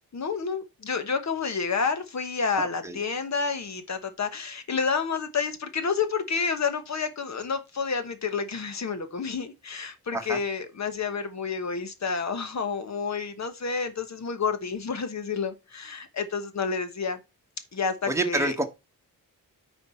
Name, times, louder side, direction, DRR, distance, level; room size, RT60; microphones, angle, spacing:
voice 1, 0.1-17.2 17.7-18.5, left 5 dB, 50° left, 1.2 m, -29 dB
voice 2, 18.1-18.6, right 2 dB, 10° right, 1.2 m, -27 dB
9.4 x 4.6 x 4.4 m
wide cardioid pair, 165°, 35 cm